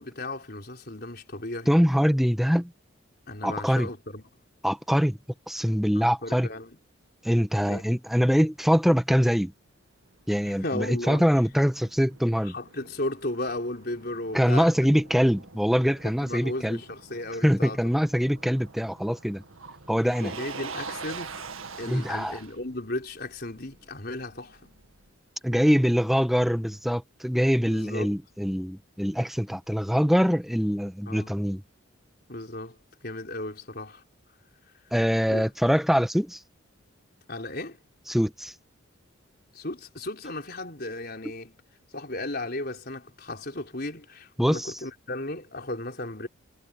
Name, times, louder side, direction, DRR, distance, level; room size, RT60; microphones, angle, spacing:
voice 1, 0.0-1.7 3.3-4.2 5.9-6.8 7.6-7.8 10.5-11.3 12.4-14.9 16.2-17.9 20.2-21.4 21.8-24.6 27.7-28.2 31.1-31.4 32.3-34.0 35.3-35.4 37.3-37.8 39.5-41.6 41.9-46.3, left 2 dB, 45° left, 4.5 m, -35 dB
voice 2, 1.7-2.7 3.4-3.9 4.6-5.2 5.5-6.5 7.2-9.5 10.3-12.5 14.3-16.8 17.4-19.4 19.9-20.3 21.9-22.4 25.4-31.6 34.9-36.4 38.1-38.5 44.4-44.7, equal, ahead, 1.2 m, -23 dB
Motor vehicle (road), 10.0-25.1, right 4 dB, 80° right, 2.0 m, -45 dB
head